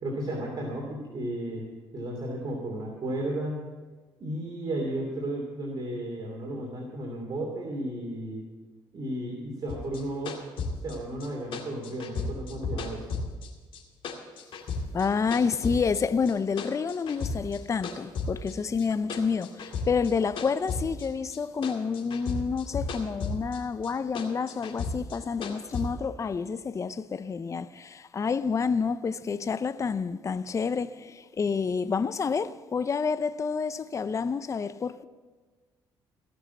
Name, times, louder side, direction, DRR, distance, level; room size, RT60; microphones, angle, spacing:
voice 1, 0.0-1.6 1.9-3.7 4.2-8.4 8.9-10.4 10.8-13.1, right 1 dB, 45° right, 2.7 m, -33 dB
sound 1, 9.7-13.8 14.0-17.6 17.8-21.4 21.6-23.6 23.8-25.8, left 4 dB, 65° left, 2.3 m, -34 dB
voice 2, 14.9-35.0, left 5 dB, 30° left, 0.5 m, -29 dB
17.0 x 6.2 x 8.4 m
cardioid pair, 80°, 10 cm